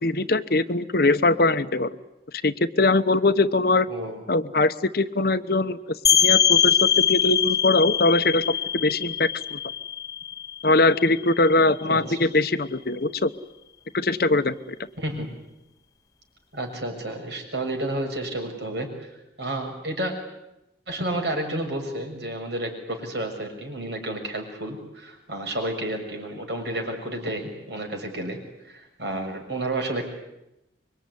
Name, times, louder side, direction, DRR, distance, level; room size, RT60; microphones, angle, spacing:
voice 1, 0.0-1.9 2.4-3.9 4.3-9.6 10.6-13.3 13.9-14.8, left 2 dB, 55° left, 12 dB, 1.0 m, -22 dB
voice 2, 3.9-4.2 11.9-12.2 15.0-15.3 16.5-20.1 20.9-28.4 28.6-30.1, right 1 dB, 70° right, 3 dB, 6.9 m, -31 dB
sound 1, 6.0-11.5, left 9 dB, 20° left, 1.1 m, -22 dB
26.0 x 23.0 x 9.8 m, 0.91 s
head